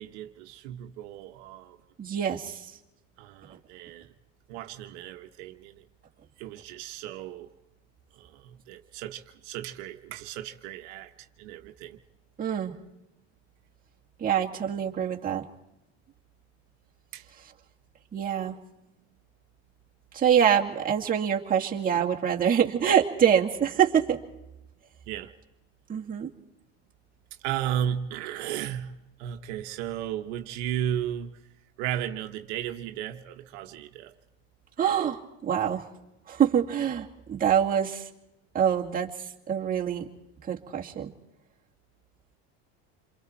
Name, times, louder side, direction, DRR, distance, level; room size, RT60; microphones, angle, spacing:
voice 1, 0.0-1.8 3.2-4.1 4.5-5.8 6.4-7.5 8.1-11.1 11.4-12.0 17.1-17.3 25.1-25.3 27.4-28.9 29.2-31.4 31.8-34.1, right 10 dB, 80° right, 5 dB, 1.2 m, -35 dB
voice 2, 2.0-2.7 12.4-12.7 14.2-15.4 18.1-18.6 20.1-24.2 25.9-26.3 34.8-35.8 36.3-38.1 38.5-39.1 39.5-40.1 40.5-41.1, right 8 dB, 25° right, -1 dB, 2.2 m, -25 dB
28.0 x 23.0 x 4.5 m, 0.90 s
supercardioid pair, 120°, 34 cm